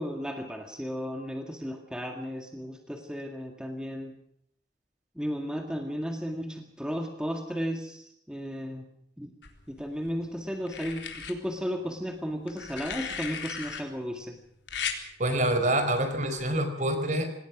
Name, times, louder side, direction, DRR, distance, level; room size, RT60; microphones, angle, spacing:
voice 1, 0.0-4.1 5.2-8.9 9.2-9.3 9.7-14.4, equal, 5° right, 3 dB, 1.9 m, -34 dB
sound 1, 9.4-10.1 10.7-11.3 12.5-13.8 14.7-15.0 16.4-16.6, left 7 dB, 85° left, 4.1 m, -36 dB
voice 2, 15.2-17.3, right 1 dB, 45° right, 8 dB, 4.6 m, -26 dB
26.5 x 19.5 x 6.1 m, 0.70 s
head